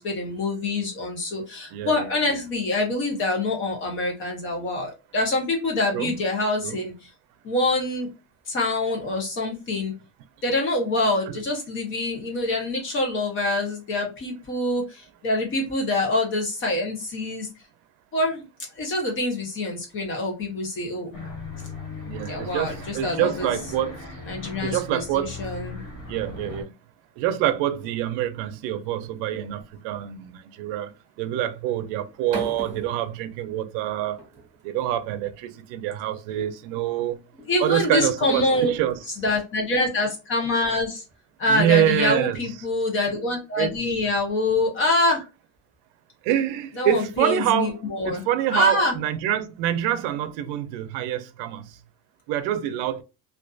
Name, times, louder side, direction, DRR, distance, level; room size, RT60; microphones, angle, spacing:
voice 1, 0.0-7.1 7.4-8.1 8.5-9.9 10.4-17.5 18.1-18.5 18.8-21.2 22.3-23.5 24.3-25.8 37.5-38.7 39.2-41.0 41.4-45.2 46.8-48.2 48.5-48.9, left 2 dB, 30° left, 0.7 m, -25 dB
voice 2, 1.7-2.1 5.9-6.1 6.6-6.8 11.3-11.4 22.1-24.0 24.6-25.3 26.1-26.7 27.2-30.9 31.2-34.2 34.6-37.2 37.6-39.0 41.5-42.4 43.6-43.7 46.2-47.8 48.0-51.7 52.3-53.0, right 11 dB, 85° right, 0.5 m, -26 dB
sound 1, 21.1-26.6, left 3 dB, 50° left, 1.0 m, -37 dB
sound 2, 29.5-30.0 31.9-33.8 34.2-34.8 35.9-36.2 37.4-40.7, right 2 dB, 20° right, 1.1 m, -40 dB
2.5 x 2.4 x 2.3 m
cardioid pair, 180°, 40 cm